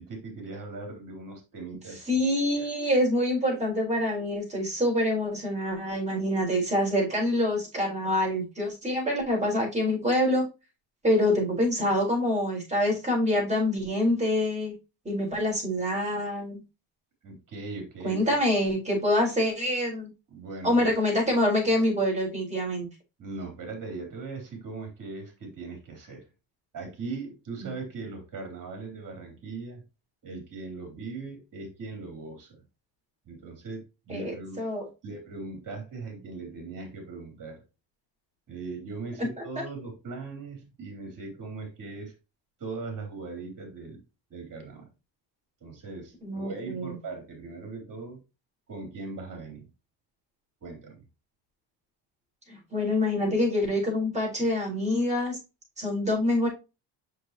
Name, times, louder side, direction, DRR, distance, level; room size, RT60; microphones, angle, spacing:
voice 1, 0.0-2.1 2.6-2.7 17.2-18.4 20.3-21.0 23.2-26.3 26.7-29.8 30.2-32.6 33.2-34.6 35.0-37.6 38.5-42.1 42.6-44.0 44.3-44.9 45.6-48.2 48.7-49.7 50.6-51.0, right 3 dB, 45° right, 2 dB, 3.5 m, -39 dB
voice 2, 2.1-10.4 11.0-14.7 15.0-16.6 18.0-20.1 20.6-22.9 27.6-27.7 34.1-34.9 39.2-39.3 46.2-47.0 52.5-55.4 55.8-56.5, left 1 dB, 15° right, -3 dB, 4.6 m, -26 dB
6.5 x 5.9 x 2.9 m, 0.27 s
cardioid pair, 115°, 43 cm